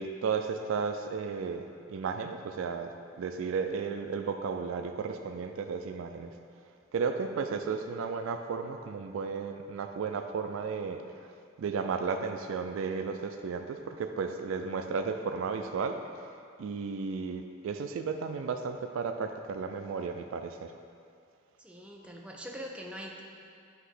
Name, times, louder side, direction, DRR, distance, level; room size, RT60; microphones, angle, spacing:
voice 1, 0.0-6.3 6.9-11.0 11.6-16.3 16.6-20.7, right 5 dB, 75° right, 6 dB, 0.3 m, -34 dB
voice 2, 21.6-23.2, equal, 5° right, 0 dB, 0.4 m, -43 dB
7.7 x 2.9 x 4.8 m, 2.4 s
head